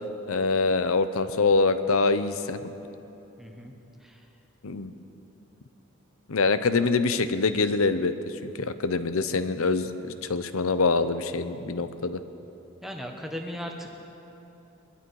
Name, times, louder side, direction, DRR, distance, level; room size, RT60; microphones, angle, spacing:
voice 1, 0.3-2.7 4.6-4.9 6.3-8.1 8.4-12.2, left 3 dB, 75° left, 11 dB, 0.7 m, -25 dB
voice 2, 3.4-3.7 4.0-4.2 12.8-13.9, equal, ahead, 2 dB, 1.1 m, -37 dB
22.0 x 12.0 x 4.7 m, 2.9 s
head